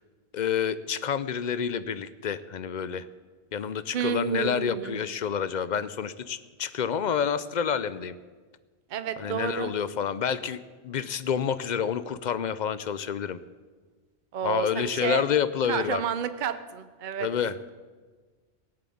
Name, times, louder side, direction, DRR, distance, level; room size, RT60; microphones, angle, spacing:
voice 1, 0.3-3.1 3.5-8.1 9.2-13.4 14.4-16.0 17.2-17.7, left 7 dB, 55° left, 15 dB, 0.6 m, -28 dB
voice 2, 3.9-5.0 8.9-9.7 14.3-15.3 15.7-17.3, right 8 dB, 50° right, 11 dB, 0.8 m, -30 dB
17.0 x 7.8 x 8.5 m, 1.4 s
omnidirectional pair, 1.2 m